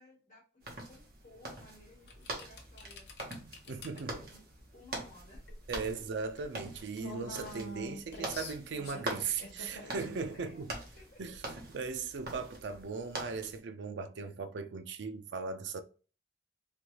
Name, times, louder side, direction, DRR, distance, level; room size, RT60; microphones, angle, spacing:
voice 1, 0.0-3.1 3.6-4.4 4.7-5.4 10.3-10.6 11.0-11.2, left 2 dB, 40° left, 1.4 m, -58 dB
sound 1, 0.6-13.6, right 2 dB, 50° right, 0.9 m, -44 dB
sound 2, 2.0-12.8, left 2 dB, 60° left, 0.7 m, -49 dB
voice 2, 3.7-4.1 5.7-10.7 11.2-11.4 11.7-15.8, right 5 dB, 75° right, 0.4 m, -38 dB
3.3 x 2.3 x 2.9 m
head